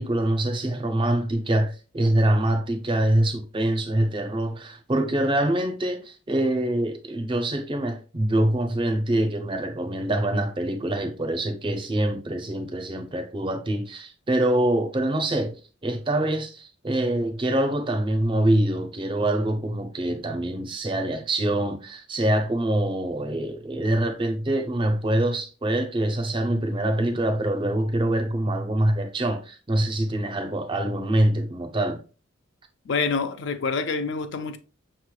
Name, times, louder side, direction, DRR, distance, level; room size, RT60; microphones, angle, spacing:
voice 1, 0.0-15.6 15.8-32.0, right 1 dB, 25° right, 0.5 m, -25 dB
voice 2, 32.9-34.6, left 4 dB, 60° left, 0.4 m, -27 dB
5.8 x 3.1 x 2.2 m
head